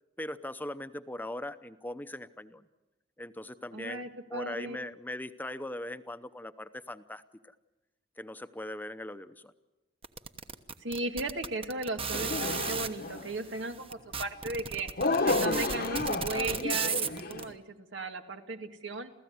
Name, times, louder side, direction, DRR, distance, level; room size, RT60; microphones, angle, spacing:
voice 1, 0.2-2.7 3.2-7.5 8.2-9.5, left 1 dB, 10° left, 11 dB, 0.8 m, -40 dB
voice 2, 3.7-4.8 10.8-14.9 15.2-19.1, right 2 dB, 90° right, 6 dB, 2.1 m, -36 dB
sound 1, 10.0-12.9 13.6-13.7 13.9-17.4, right 6 dB, 30° right, 1.1 m, -34 dB
sound 2, 12.1-13.3 15.0-17.5, left 3 dB, 55° left, 1.1 m, -31 dB
29.0 x 15.5 x 9.5 m, 1.1 s
head